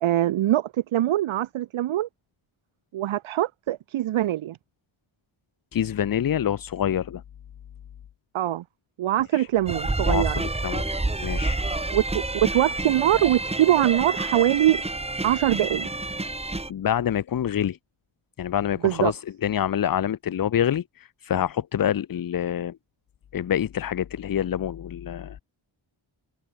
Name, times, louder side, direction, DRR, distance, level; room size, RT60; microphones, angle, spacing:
voice 1, 0.0-2.1 2.9-4.6 8.3-8.6 9.0-10.4 11.9-14.8 15.2-15.9 18.8-19.1, right 13 dB, 75° right, 0.6 m, -23 dB
voice 2, 5.7-7.2 9.3-9.5 10.1-10.9 11.2-11.6 16.7-17.8 18.4-22.8 23.3-25.4, left 10 dB, 45° left, 0.5 m, -26 dB
sound 1, 9.7-16.7, right 2 dB, 10° right, 1.3 m, -28 dB
wide cardioid pair, 175°, 49 cm